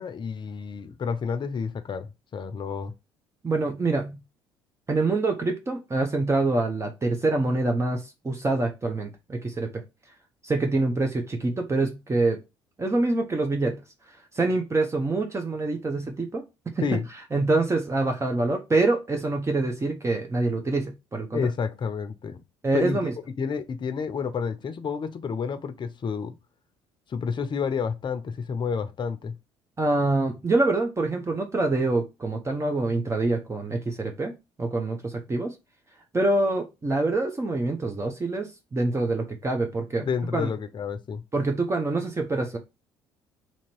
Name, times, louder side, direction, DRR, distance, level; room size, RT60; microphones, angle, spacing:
voice 1, 0.0-2.9 16.8-17.0 21.3-22.4 22.7-23.0 23.4-26.3 27.1-29.3 40.0-41.2, left 6 dB, 40° left, 0.7 m, -30 dB
voice 2, 3.4-4.2 4.9-9.8 10.4-12.4 12.8-13.8 14.3-16.4 16.8-16.9 17.3-21.4 22.6-23.1 29.8-35.5 36.1-40.0 40.3-40.5 41.3-42.6, right 2 dB, 20° right, 0.8 m, -25 dB
3.0 x 2.9 x 4.5 m
hypercardioid pair, 55°, 13 cm